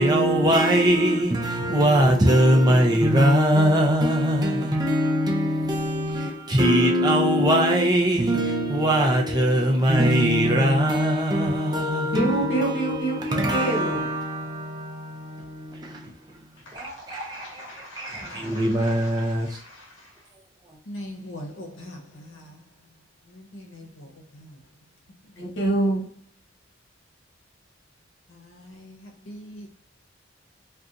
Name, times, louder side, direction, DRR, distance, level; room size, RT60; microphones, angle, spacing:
voice 1, 0.0-16.1 16.7-19.6, equal, 20° right, 0.4 m, -21 dB
voice 2, 12.1-14.1 25.4-26.0, right 1 dB, 65° left, 1.1 m, -25 dB
voice 3, 16.6-20.3 20.8-22.6 23.2-24.6 25.2-25.3 28.3-29.7, left 1 dB, 80° left, 0.8 m, -42 dB
2.5 x 2.3 x 3.8 m
head